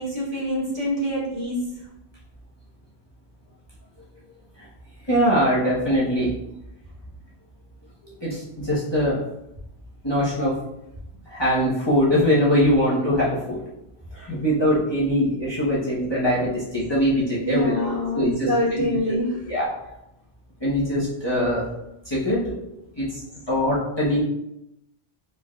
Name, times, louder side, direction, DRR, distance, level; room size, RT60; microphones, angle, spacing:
voice 1, 0.0-1.7 16.7-16.8 17.2-19.5 21.5-21.6 23.2-23.3, left 1 dB, 40° right, -8 dB, 1.9 m, -26 dB
voice 2, 5.1-6.3 8.2-8.4 8.7-9.2 10.0-10.5 11.3-13.6 14.3-17.8 18.1-18.5 19.5-19.7 20.6-21.6 22.1-22.4 23.0-23.1 23.5-24.2, equal, 25° left, -8 dB, 1.0 m, -21 dB
4.8 x 3.8 x 2.4 m, 0.83 s
omnidirectional pair, 1.2 m